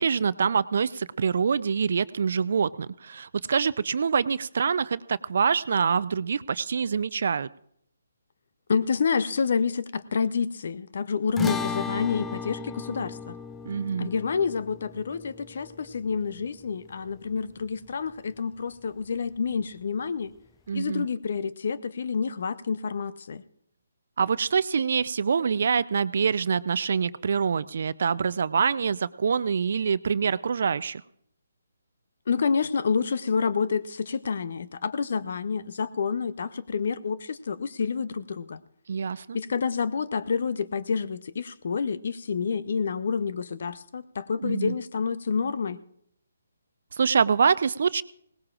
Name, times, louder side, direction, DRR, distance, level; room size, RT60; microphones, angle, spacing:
voice 1, 0.0-7.5 13.6-14.1 20.7-21.1 24.2-31.0 38.9-39.4 44.4-44.7 46.9-48.0, right 6 dB, 55° right, 18 dB, 0.5 m, -25 dB
voice 2, 8.7-13.4 14.0-20.3 20.7-23.4 32.3-38.6 39.3-45.8, left 5 dB, 55° left, 15 dB, 0.7 m, -28 dB
sound 1, 11.4-17.9, left 5 dB, 10° left, 0.4 m, -37 dB
21.0 x 18.5 x 2.5 m, 0.70 s
figure-of-eight pair, 145°, 0 cm